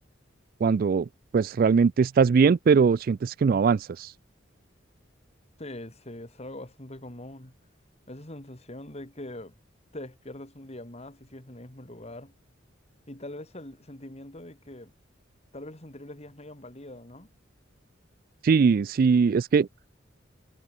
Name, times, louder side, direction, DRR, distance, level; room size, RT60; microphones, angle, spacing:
voice 1, 0.6-4.1 18.4-19.7, right 5 dB, 50° right, 0.3 m, -21 dB
voice 2, 5.6-7.6 8.1-9.5 9.9-12.3 13.1-14.9 15.5-17.3, left 1 dB, 35° left, 3.3 m, -42 dB
head